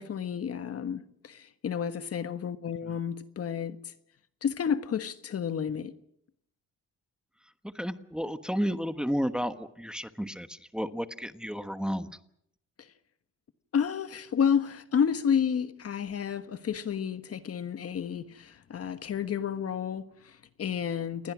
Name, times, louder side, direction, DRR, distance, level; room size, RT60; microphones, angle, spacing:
voice 1, 0.0-3.9 4.4-5.9 12.8-12.9 13.7-21.3, left 7 dB, 50° left, 1.4 m, -31 dB
voice 2, 7.7-12.1, equal, 5° right, 1.3 m, -32 dB
28.5 x 20.5 x 6.2 m
cardioid pair, 90°, 30 cm